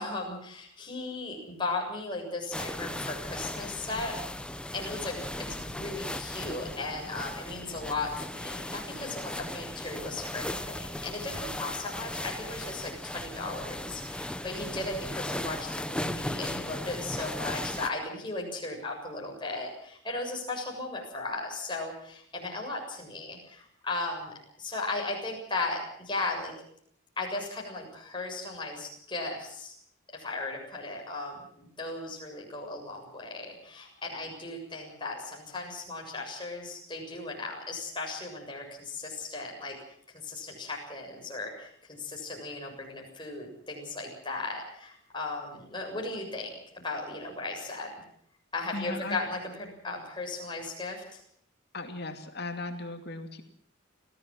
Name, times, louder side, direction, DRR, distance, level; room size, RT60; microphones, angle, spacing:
voice 1, 0.0-4.2 4.7-26.5 27.2-29.7 30.1-39.8 40.1-47.9 48.5-51.2, left 2 dB, 25° left, 0 dB, 7.2 m, -36 dB
sound 1, 2.5-17.9, left 1 dB, 5° left, 0.8 m, -37 dB
voice 2, 48.7-49.2 51.7-53.4, left 2 dB, 50° left, 6 dB, 2.6 m, -37 dB
26.5 x 17.0 x 7.7 m, 0.65 s
head